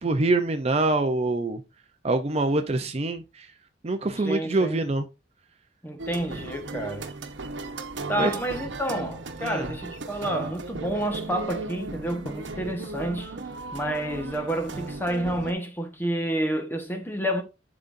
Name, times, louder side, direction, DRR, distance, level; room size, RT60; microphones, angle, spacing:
voice 1, 0.0-1.6 2.0-3.5 3.8-5.1 8.2-8.3 9.4-9.7, right 2 dB, 35° right, 0.6 m, -25 dB
voice 2, 4.2-4.8 5.8-7.1 8.1-13.3 13.7-17.4, right 1 dB, 10° left, 1.2 m, -29 dB
sound 1, 6.0-15.5, right 3 dB, 85° right, 1.0 m, -36 dB
10.5 x 3.9 x 2.6 m
head